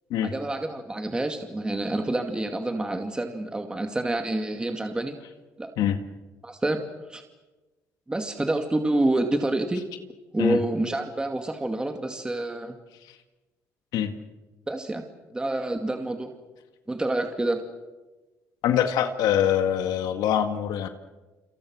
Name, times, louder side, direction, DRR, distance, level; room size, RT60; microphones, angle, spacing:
voice 1, 0.2-5.2 5.6-5.7 6.4-6.8 7.1-7.2 8.1-9.8 10.3-12.7 14.7-15.0 15.3-16.3 16.9-17.6, right 2 dB, 15° right, 5 dB, 2.3 m, -27 dB
voice 2, 18.6-20.9, left 10 dB, 80° left, 8 dB, 1.9 m, -24 dB
29.5 x 27.0 x 6.5 m, 1.1 s
cardioid pair, 110°, 7 cm